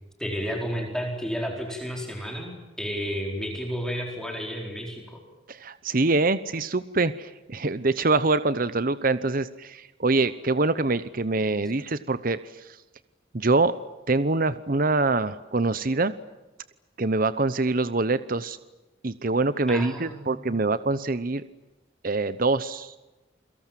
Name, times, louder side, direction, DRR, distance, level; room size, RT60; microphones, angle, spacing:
voice 1, 0.2-5.2 19.7-20.4, equal, 5° left, 1 dB, 4.5 m, -32 dB
voice 2, 5.5-12.8 13.3-13.7 14.1-16.1 17.0-18.6 19.0-21.4 22.0-23.0, right 3 dB, 45° right, 14 dB, 0.9 m, -25 dB
29.5 x 24.0 x 7.6 m, 1.1 s
head